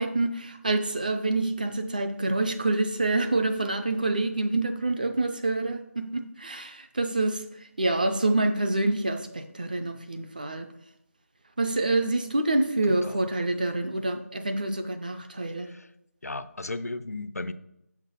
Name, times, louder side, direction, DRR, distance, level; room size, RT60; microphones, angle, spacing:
voice 1, 0.0-7.4 7.8-10.7 11.6-15.7, right 2 dB, 35° right, 6 dB, 0.5 m, -27 dB
voice 2, 12.9-13.3 15.6-15.9 16.2-17.5, left 2 dB, 75° left, 13 dB, 0.5 m, -35 dB
6.6 x 5.9 x 4.2 m, 0.82 s
figure-of-eight pair, 165°, 8 cm